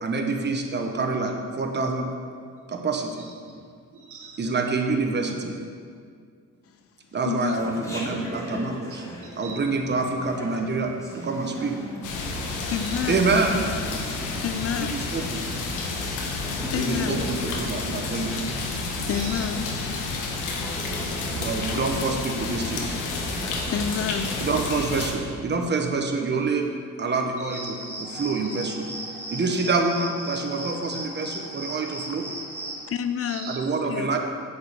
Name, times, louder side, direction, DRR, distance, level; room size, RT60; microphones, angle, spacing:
voice 1, 0.0-2.1 2.7-3.2 4.4-5.6 7.1-9.1 9.4-11.7 13.1-13.5 14.8-15.4 16.7-18.4 21.3-23.0 24.4-26.7 27.0-28.9 29.3-32.2 33.5-34.2, right 3 dB, 35° right, 3 dB, 1.2 m, -26 dB
voice 2, 3.2-3.6 3.9-4.5 9.2-9.6 12.7-13.1 14.2-14.6 18.7-19.5 27.4-27.6 28.3-28.5 33.2-33.6, right 5 dB, 75° right, 0 dB, 1.8 m, -42 dB
voice 3, 7.2-7.6 12.7-13.3 14.4-15.0 16.7-17.2 19.1-19.7 23.4-24.4 32.9-34.1, left 8 dB, 50° left, 11 dB, 0.5 m, -29 dB
Chatter, 7.6-24.7, left 1 dB, 10° left, 2.0 m, -39 dB
sound 1, 12.0-25.1, left 3 dB, 85° left, 1.4 m, -30 dB
sound 2, 27.5-32.9, right 1 dB, 10° right, 1.9 m, -36 dB
8.1 x 5.5 x 6.9 m, 2.1 s
cardioid pair, 90°, 30 cm